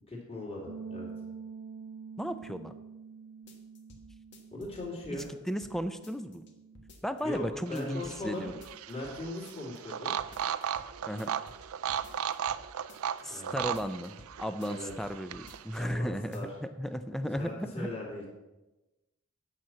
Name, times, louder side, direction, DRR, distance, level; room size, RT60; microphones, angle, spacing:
voice 1, 0.1-1.1 4.5-5.3 7.2-8.5 8.9-10.2 13.3-13.7 14.7-14.9 15.7-16.5 17.4-18.3, left 1 dB, 25° left, -4 dB, 2.4 m, -39 dB
sound 1, 0.7-6.9, right 5 dB, 40° right, 0.7 m, -47 dB
voice 2, 2.2-2.7 5.1-5.2 5.5-6.4 7.0-8.5 11.1-11.3 13.2-17.9, equal, ahead, 10 dB, 0.4 m, -35 dB
sound 2, 3.5-4.0 4.3-5.7 6.0-6.5 6.7-7.5 7.7-8.2 8.5-9.2 9.5-9.9 10.2-10.9 11.2-12.6 12.9-13.4 13.6-14.3 14.6-15.1 15.3-16.0 16.3-16.4, left 1 dB, 50° left, 1.4 m, -53 dB
sound 3, 7.7-15.8, right 9 dB, 70° right, 0.4 m, -36 dB
9.2 x 5.7 x 7.3 m, 1.1 s
head